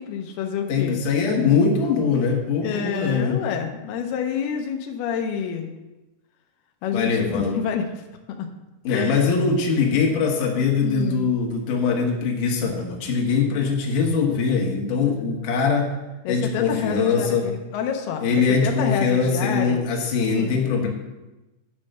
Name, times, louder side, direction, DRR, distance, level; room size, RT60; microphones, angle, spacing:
voice 1, 0.0-1.0 2.6-5.7 6.8-7.9 8.3-8.5 8.9-9.3 10.8-11.3 16.2-19.8 20.4-20.7, left 7 dB, 90° left, 3 dB, 2.8 m, -28 dB
voice 2, 0.7-3.4 6.9-7.5 8.8-15.9 16.3-17.5 18.2-20.9, left 5 dB, 65° left, 0 dB, 2.8 m, -22 dB
10.0 x 5.4 x 6.5 m, 1.0 s
omnidirectional pair, 4.4 m